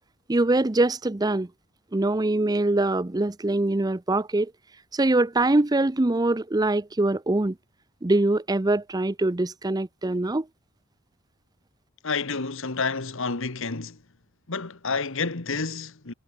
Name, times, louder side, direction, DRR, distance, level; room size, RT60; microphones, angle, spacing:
voice 1, 0.3-1.5 1.9-4.5 4.9-7.5 8.0-10.4, right 2 dB, 15° right, 0.6 m, -23 dB
voice 2, 12.0-14.0 14.5-16.1, left 4 dB, 60° left, 1.5 m, -29 dB
head